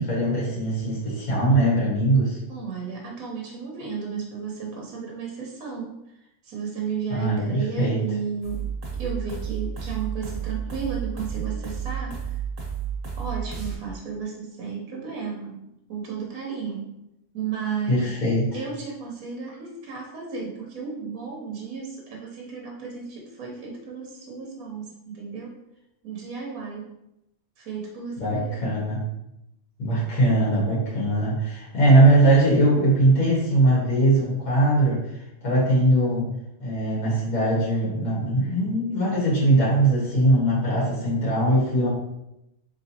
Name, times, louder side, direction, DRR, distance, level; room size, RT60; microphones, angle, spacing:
voice 1, 0.0-2.4 7.1-8.0 17.9-18.4 28.2-29.0 29.8-36.3 36.6-41.9, right 1 dB, 85° left, -6 dB, 1.8 m, -21 dB
voice 2, 2.5-6.0 6.4-12.3 13.2-16.9 17.3-18.1 18.5-25.6 26.0-26.9 27.6-28.7, right 6 dB, 80° right, -2 dB, 1.2 m, -34 dB
sound 1, 8.4-13.8, right 8 dB, 45° right, 1.1 m, -31 dB
4.0 x 3.5 x 2.7 m, 0.86 s
omnidirectional pair, 1.4 m